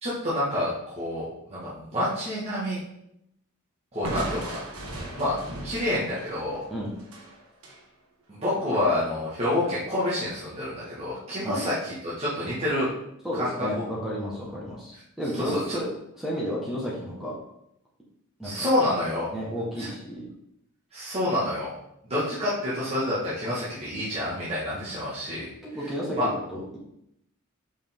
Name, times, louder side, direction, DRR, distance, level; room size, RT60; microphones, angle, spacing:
voice 1, 0.0-2.8 3.9-4.7 5.2-5.4 5.6-6.6 8.3-12.9 13.3-13.8 15.4-15.6 18.4-19.3 19.8-19.9 20.9-21.7 22.0-25.5 26.2-26.3, left 1 dB, 30° right, -9 dB, 1.9 m, -28 dB
Crushing, 4.0-7.8, right 1 dB, 85° right, 1.5 m, -37 dB
voice 2, 13.2-15.9 16.1-17.3 18.4-18.7 19.3-20.2 24.7-24.9 25.6-26.8, equal, ahead, -7 dB, 1.4 m, -32 dB
6.8 x 5.3 x 3.7 m, 0.78 s
head